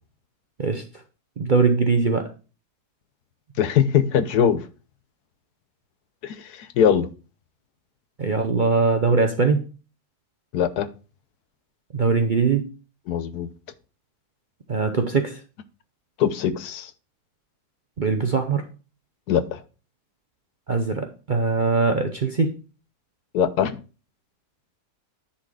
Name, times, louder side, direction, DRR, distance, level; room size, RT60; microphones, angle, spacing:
voice 1, 1.4-2.3 8.2-9.6 11.9-12.7 14.7-15.4 18.0-18.7 20.7-22.6, right 4 dB, 45° right, 0.6 m, -21 dB
voice 2, 3.6-4.6 6.2-7.1 10.5-10.9 13.1-13.5 16.2-16.9 19.3-19.6 23.3-23.8, left 8 dB, 75° left, 1.2 m, -21 dB
10.0 x 4.2 x 4.8 m
omnidirectional pair, 1.7 m